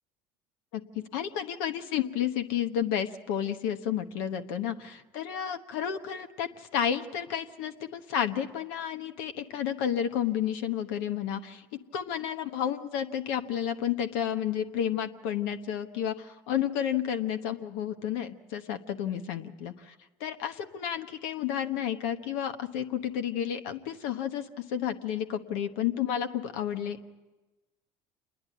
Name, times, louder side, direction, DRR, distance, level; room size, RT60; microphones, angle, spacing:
voice 1, 1.1-11.6 11.9-19.9 20.2-27.0, left 9 dB, 80° left, 8 dB, 1.1 m, -31 dB
27.5 x 10.5 x 9.5 m, 1.1 s
supercardioid pair, 85°, 11 cm